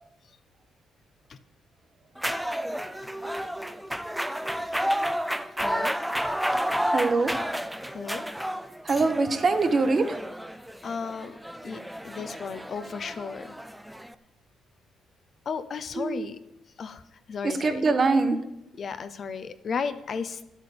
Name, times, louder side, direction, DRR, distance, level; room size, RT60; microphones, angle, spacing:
sound 1, 2.2-14.1, equal, 5° right, 0.6 m, -31 dB
voice 1, 5.6-6.0 7.9-8.2 10.5-11.4 11.6-13.6 15.5-16.4 16.8-17.0 17.3-17.8 18.8-20.4, left 5 dB, 50° left, 11 dB, 0.7 m, -34 dB
voice 2, 6.8-7.3 8.8-10.2 15.9-16.3 17.4-18.4, right 3 dB, 40° right, 8 dB, 1.2 m, -23 dB
10.5 x 8.1 x 6.8 m, 0.88 s
cardioid pair, 90°, 0 cm